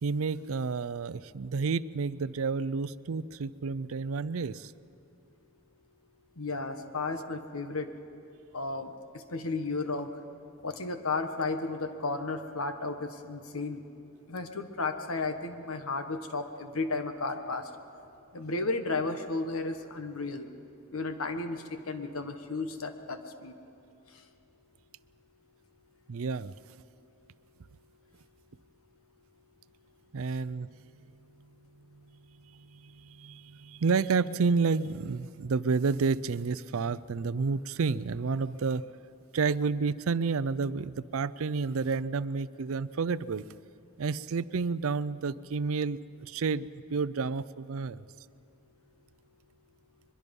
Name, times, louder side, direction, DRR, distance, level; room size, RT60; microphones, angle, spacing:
voice 1, 0.0-4.7 26.1-26.5 30.1-30.7 31.9-38.9 39.3-43.5 44.0-48.0, right 4 dB, 70° right, 17 dB, 0.5 m, -30 dB
voice 2, 6.4-7.9 8.5-10.1 10.6-13.8 14.3-17.7 18.3-20.5 20.9-23.5, left 3 dB, 80° left, 7 dB, 1.4 m, -33 dB
23.0 x 22.0 x 5.4 m, 2.7 s
head